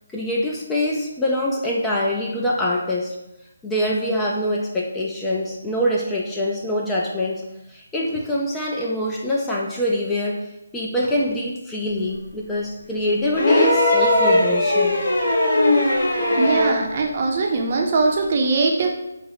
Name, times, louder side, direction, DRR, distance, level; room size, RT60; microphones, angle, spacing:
voice 1, 0.1-3.2 3.6-15.0, left 1 dB, 10° left, -3 dB, 0.4 m, -24 dB
sound 1, 13.3-16.9 18.2-18.3, left 1 dB, 50° left, 0.9 m, -18 dB
voice 2, 16.4-18.9, right 3 dB, 40° right, 1 dB, 0.6 m, -21 dB
4.3 x 2.1 x 3.9 m, 0.89 s
hypercardioid pair, 165°, 0 cm